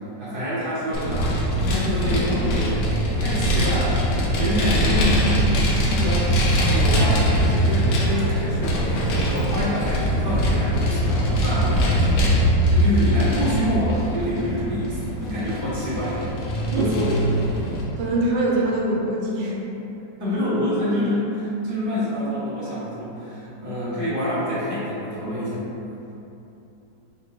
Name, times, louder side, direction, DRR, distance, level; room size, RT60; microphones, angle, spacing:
voice 1, 0.2-6.3 6.7-8.8 9.1-16.1 16.7-17.4 20.2-25.6, left 1 dB, 15° right, -11 dB, 0.8 m, -27 dB
Vehicle, 0.9-17.8, equal, 70° left, 1.2 m, -22 dB
voice 2, 18.0-19.6, right 2 dB, 80° right, -3 dB, 1.2 m, -23 dB
4.9 x 2.9 x 2.6 m, 3.0 s
omnidirectional pair, 2.0 m